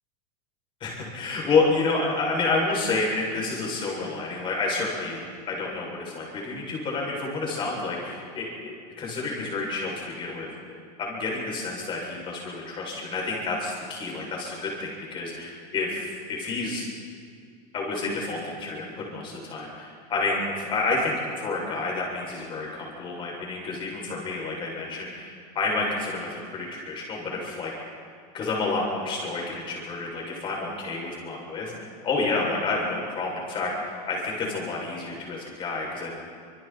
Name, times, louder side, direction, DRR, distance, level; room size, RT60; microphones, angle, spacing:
voice 1, 0.8-10.5 11.0-16.9 17.7-27.7 28.3-31.7 32.0-36.2, left 3 dB, 25° left, -2 dB, 7.8 m, -29 dB
29.5 x 27.0 x 4.7 m, 2.2 s
supercardioid pair, 165°, 21 cm